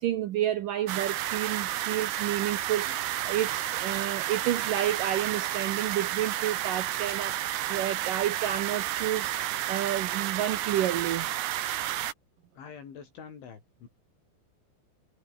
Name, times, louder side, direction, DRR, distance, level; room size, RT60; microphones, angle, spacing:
voice 1, 0.0-11.3, right 12 dB, 85° right, 1.9 m, -30 dB
sound 1, 0.9-12.1, right 13 dB, 65° right, 3.4 m, -31 dB
voice 2, 12.6-13.9, left 7 dB, 75° left, 7.0 m, -45 dB
omnidirectional pair, 5.5 m